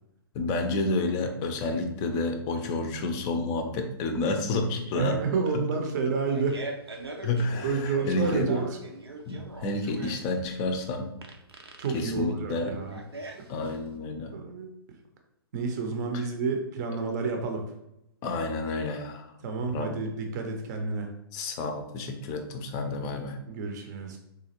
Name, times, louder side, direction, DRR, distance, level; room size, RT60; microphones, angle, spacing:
voice 1, 0.3-5.2 5.5-5.7 7.2-8.5 9.3-11.1 11.9-12.8 13.5-14.3 16.1-16.2 18.2-19.3 19.6-19.9 21.3-23.4, left 3 dB, 30° left, 6 dB, 0.5 m, -30 dB
voice 2, 4.9-6.6 7.6-8.7 11.8-13.0 14.3-14.7 15.5-17.6 19.4-21.1 23.5-24.2, right 4 dB, 45° right, 3 dB, 0.6 m, -29 dB
Fart, 6.0-13.9, right 2 dB, 90° right, 0.6 m, -42 dB
3.9 x 2.4 x 2.9 m, 0.83 s
figure-of-eight pair, 125°, 13 cm